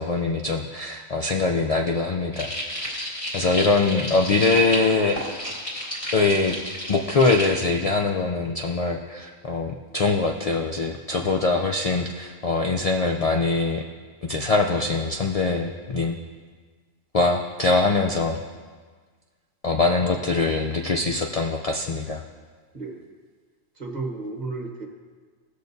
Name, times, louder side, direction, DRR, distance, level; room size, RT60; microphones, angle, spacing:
voice 1, 0.0-3.0 3.3-5.2 6.1-6.6 6.9-13.8 14.3-16.2 17.1-18.4 19.6-22.2, left 3 dB, 75° left, 1 dB, 0.3 m, -23 dB
sound 1, 2.3-7.5, equal, 25° left, 1.8 m, -32 dB
voice 2, 22.7-23.1 23.7-24.9, right 3 dB, 35° right, 1 dB, 1.3 m, -33 dB
17.5 x 6.6 x 2.7 m, 1.5 s
omnidirectional pair, 1.3 m